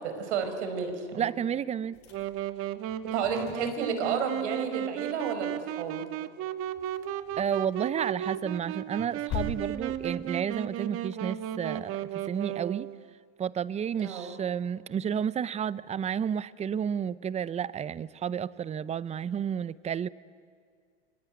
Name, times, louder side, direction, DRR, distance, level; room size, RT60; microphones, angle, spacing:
voice 1, 0.0-1.3 3.1-6.0 14.0-14.3, right 6 dB, 75° right, 8 dB, 5.2 m, -32 dB
voice 2, 1.2-2.0 7.4-11.9 12.3-12.9 13.4-20.1, right 8 dB, 20° right, 19 dB, 0.6 m, -31 dB
sound 1, 1.9-4.5 4.7-5.0 5.3-5.4 5.7-5.8 6.4-7.8 8.2-10.7, left 6 dB, 40° left, 4.9 m, -42 dB
Wind instrument woodwind instrument, 2.1-13.0, right 11 dB, 40° right, 1.3 m, -35 dB
27.5 x 21.5 x 10.0 m, 2.1 s
supercardioid pair, 125°, 35 cm